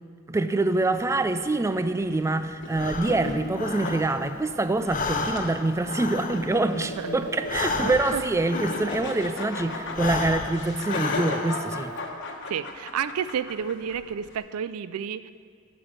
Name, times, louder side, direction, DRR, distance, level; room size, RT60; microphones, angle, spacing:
voice 1, 0.3-11.9, right 2 dB, 15° right, 10 dB, 0.3 m, -25 dB
sound 1, 0.8-14.4, left 2 dB, 55° left, 1.2 m, -37 dB
Breathing, 2.7-4.5 4.8-9.4 9.8-11.8, left 3 dB, 40° left, 0.7 m, -32 dB
voice 2, 7.8-8.2 12.5-15.3, right 8 dB, 90° right, 14 dB, 0.4 m, -31 dB
8.7 x 6.9 x 7.3 m, 2.2 s
head